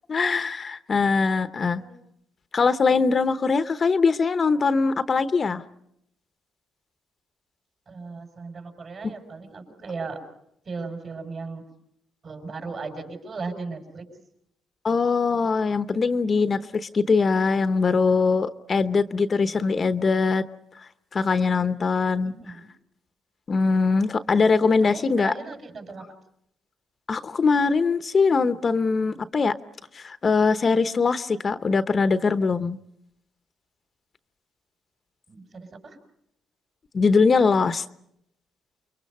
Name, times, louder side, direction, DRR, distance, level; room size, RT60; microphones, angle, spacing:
voice 1, 0.1-1.8 2.5-5.6 14.8-20.4 21.1-22.3 23.5-25.3 27.1-29.6 29.9-32.8 36.9-37.8, left 4 dB, 40° left, 12 dB, 0.9 m, -22 dB
voice 2, 7.9-10.2 10.6-11.6 12.2-14.1 22.2-22.7 24.8-26.1 35.3-36.0, right 4 dB, 50° right, 5 dB, 6.3 m, -37 dB
29.0 x 23.0 x 5.4 m, 0.75 s
cardioid pair, 90°, 0 cm